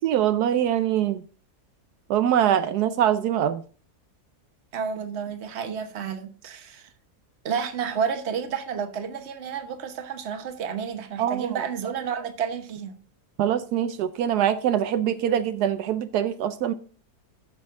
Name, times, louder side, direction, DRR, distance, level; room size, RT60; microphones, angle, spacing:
voice 1, 0.0-1.2 2.1-3.6 11.2-11.6 13.4-16.7, right 10 dB, 85° right, 1.2 m, -23 dB
voice 2, 4.7-6.9 7.4-12.9, right 7 dB, 45° right, 1.3 m, -31 dB
14.5 x 6.2 x 3.7 m
omnidirectional pair, 1.7 m